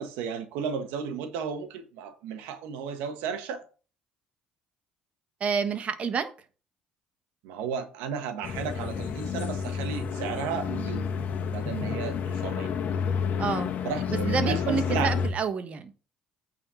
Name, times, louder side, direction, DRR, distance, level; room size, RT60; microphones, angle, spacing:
voice 1, 0.0-3.6 7.4-11.1 11.5-12.7 13.8-15.1, right 6 dB, 85° right, 1.3 m, -33 dB
voice 2, 5.4-6.3 13.4-13.7 14.1-15.9, right 6 dB, 45° right, 1.3 m, -29 dB
sound 1, 8.4-15.3, left 6 dB, 55° left, 1.5 m, -30 dB
8.8 x 4.4 x 5.6 m
supercardioid pair, 95°, 3 cm